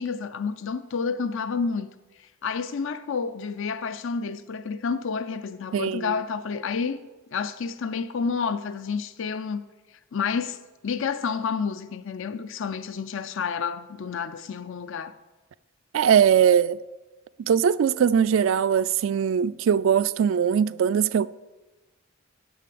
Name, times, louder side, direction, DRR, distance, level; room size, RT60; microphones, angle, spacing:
voice 1, 0.0-1.9 2.2-7.0 7.3-9.6 10.1-10.6 10.8-15.2, left 5 dB, 65° left, 0.5 m, -29 dB
voice 2, 5.7-6.1 15.9-16.8 17.5-21.3, right 8 dB, 65° right, 0.3 m, -21 dB
10.0 x 7.6 x 8.4 m
head